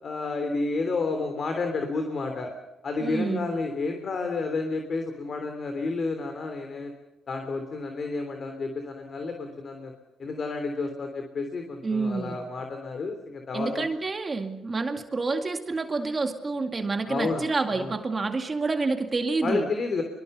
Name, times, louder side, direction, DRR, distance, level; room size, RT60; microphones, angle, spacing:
voice 1, 0.0-2.5 2.8-6.9 7.3-9.9 10.2-13.9 17.1-17.4 17.7-17.9 19.4-20.0, left 3 dB, 45° left, 5 dB, 3.4 m, -30 dB
voice 2, 3.0-3.5 11.8-12.4 13.5-19.7, right 3 dB, 30° right, 5 dB, 2.2 m, -28 dB
24.5 x 23.0 x 6.9 m, 1.0 s
cardioid pair, 90°, 0 cm